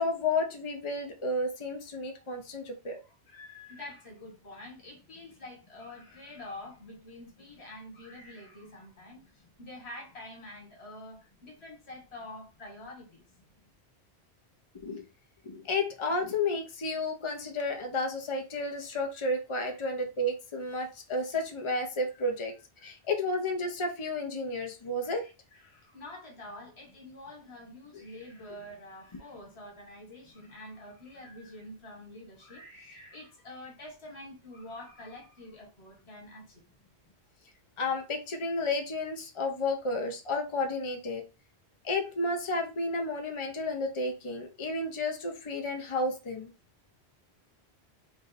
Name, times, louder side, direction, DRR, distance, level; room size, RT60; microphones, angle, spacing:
voice 1, 0.0-3.0 14.8-15.1 15.4-22.5 22.8-25.2 37.8-41.2 41.8-46.5, left 2 dB, 30° left, 0.8 m, -32 dB
voice 2, 2.9-13.2 19.6-19.8 22.1-22.2 22.8-22.9 25.0-36.6, left 1 dB, 85° left, 1.7 m, -47 dB
3.5 x 2.6 x 4.1 m
omnidirectional pair, 1.1 m